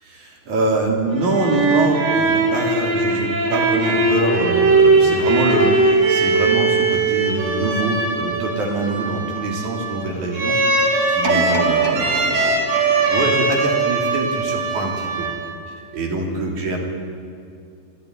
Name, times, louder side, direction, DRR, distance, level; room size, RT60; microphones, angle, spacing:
voice 1, 0.0-15.3 15.9-16.8, right 2 dB, 85° right, 0 dB, 4.7 m, -24 dB
sound 1, 1.1-15.8, right 3 dB, 60° right, 3.5 m, -20 dB
sound 2, 11.2-14.3 14.9-15.0, right 3 dB, 40° right, 2.5 m, -27 dB
24.0 x 13.5 x 9.7 m, 2.4 s
omnidirectional pair, 3.3 m